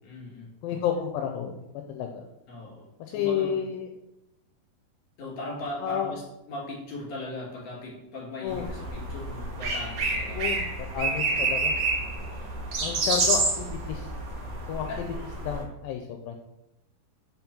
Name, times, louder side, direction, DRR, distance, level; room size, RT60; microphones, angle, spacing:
voice 1, 0.0-0.8 2.5-3.6 5.2-6.2 6.5-10.8 14.9-15.0, left 1 dB, 50° left, -4 dB, 3.3 m, -39 dB
voice 2, 0.6-1.6 1.9-2.2 3.1-3.9 5.8-6.1 8.4-8.7 10.3-10.6 10.9-11.7 12.8-14.1 14.7-14.9 15.4-16.4, left 8 dB, 80° left, 4 dB, 2.2 m, -30 dB
sound 1, 8.5-15.6, right 3 dB, 55° right, 2.0 m, -29 dB
5.7 x 4.6 x 5.4 m, 0.88 s
omnidirectional pair, 4.1 m